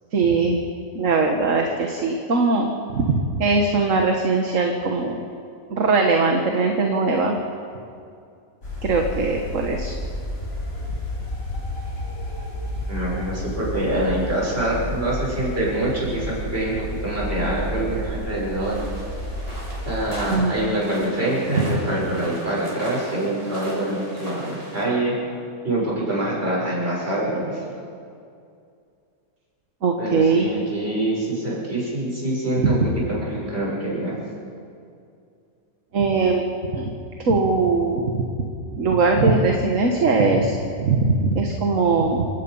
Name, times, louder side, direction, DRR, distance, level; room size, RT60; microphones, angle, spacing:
voice 1, 0.1-0.6 0.9-5.2 5.7-7.4 8.8-9.9 20.3-20.5 21.6-21.7 29.8-30.5 32.6-32.8 35.9-36.4 36.7-36.9 37.3-38.2 38.7-42.3, right 3 dB, 55° right, 2 dB, 1.8 m, -20 dB
sound 1, 8.6-20.3, equal, 60° left, 6.9 m, -31 dB
voice 2, 12.9-18.8 19.9-25.2 25.6-27.6 30.0-34.2, right 1 dB, 40° right, -5 dB, 7.3 m, -25 dB
sound 2, 18.6-24.8, equal, 80° right, 6.6 m, -38 dB
29.0 x 17.0 x 5.6 m, 2.4 s
omnidirectional pair, 1.6 m